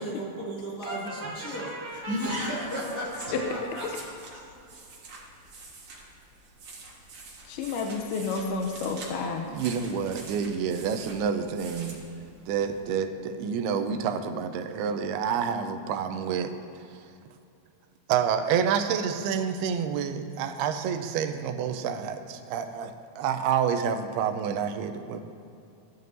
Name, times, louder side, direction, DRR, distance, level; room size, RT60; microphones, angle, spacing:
voice 1, 0.0-4.4, equal, 40° left, -7 dB, 1.4 m, -34 dB
Brass instrument, 0.8-3.6, right 2 dB, 40° right, 1.7 m, -39 dB
sound 1, 1.8-12.8, right 3 dB, 60° right, 1.3 m, -47 dB
voice 2, 7.5-9.5, left 4 dB, 85° left, 2 dB, 2.6 m, -30 dB
voice 3, 9.5-12.0 12.5-16.5 18.1-25.2, right 7 dB, 90° right, 7 dB, 2.6 m, -28 dB
16.0 x 11.0 x 2.7 m, 2.6 s
omnidirectional pair, 4.5 m